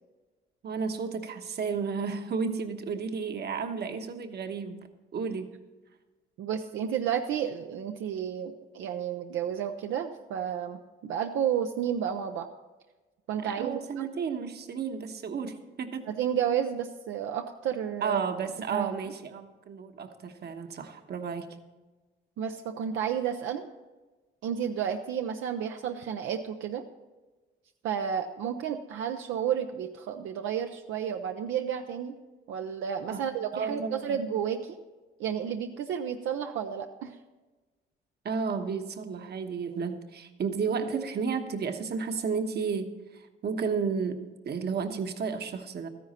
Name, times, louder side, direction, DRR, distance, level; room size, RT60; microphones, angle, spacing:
voice 1, 0.6-5.5 13.4-16.1 18.0-21.6 33.1-34.3 38.2-45.9, right 5 dB, 55° right, 7 dB, 1.2 m, -33 dB
voice 2, 6.4-12.5 13.3-14.1 16.1-18.2 18.7-18.9 22.4-23.7 24.4-26.8 27.8-32.2 32.5-34.8 35.2-37.2, right 8 dB, 80° right, 5 dB, 0.7 m, -31 dB
13.5 x 10.0 x 4.3 m, 1.2 s
cardioid pair, 90°, 20 cm